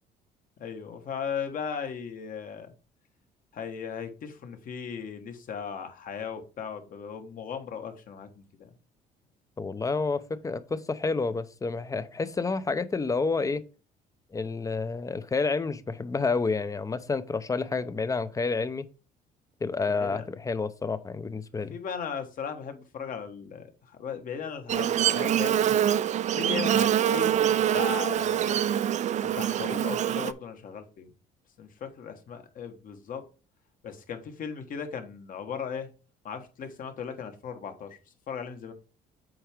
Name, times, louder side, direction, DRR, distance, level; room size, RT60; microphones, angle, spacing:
voice 1, 0.6-2.7 3.5-8.7 19.9-20.3 21.7-25.8 26.4-28.6 29.3-31.1 31.6-33.2 33.8-35.9 36.2-38.0 38.3-38.7, left 7 dB, 55° left, 1.4 m, -37 dB
voice 2, 9.6-13.6 14.3-18.9 19.6-21.8, left 4 dB, 20° left, 0.6 m, -29 dB
Buzz, 24.7-30.3, right 10 dB, 45° right, 0.4 m, -25 dB
7.9 x 4.6 x 3.6 m
cardioid pair, 110°, 17 cm